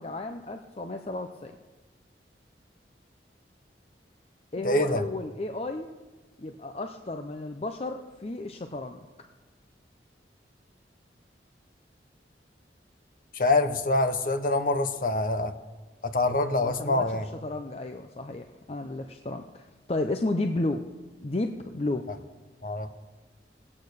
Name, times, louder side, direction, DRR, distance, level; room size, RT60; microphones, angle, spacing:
voice 1, 0.0-1.5 4.5-5.9 6.4-9.0 16.6-20.8 21.2-22.1, left 2 dB, 35° left, 6 dB, 0.6 m, -33 dB
voice 2, 4.6-5.0 13.3-15.5 16.0-17.3 22.6-22.9, left 2 dB, 50° left, 9 dB, 0.9 m, -25 dB
18.0 x 8.7 x 6.5 m, 1.2 s
head